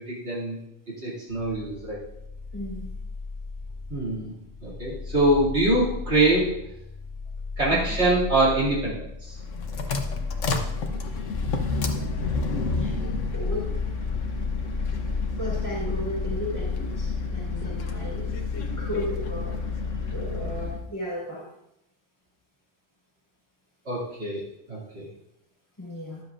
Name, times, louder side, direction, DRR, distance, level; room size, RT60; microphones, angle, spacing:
voice 1, 0.1-0.6 1.0-2.0 3.9-4.3 4.6-6.5 7.6-9.4 23.9-24.4 24.7-25.1, right 2 dB, 60° right, -6 dB, 2.9 m, -24 dB
sound 1, 1.3-17.2, left 4 dB, 35° right, 3.4 m, -35 dB
voice 2, 2.5-2.9 7.7-8.0 12.7-13.8 15.4-18.3 18.8-19.5 20.1-21.4 25.8-26.2, equal, 15° left, -4 dB, 4.4 m, -35 dB
sound 2, 9.3-20.9, left 4 dB, 85° left, 1.3 m, -30 dB
12.5 x 11.0 x 2.5 m, 0.82 s
omnidirectional pair, 1.3 m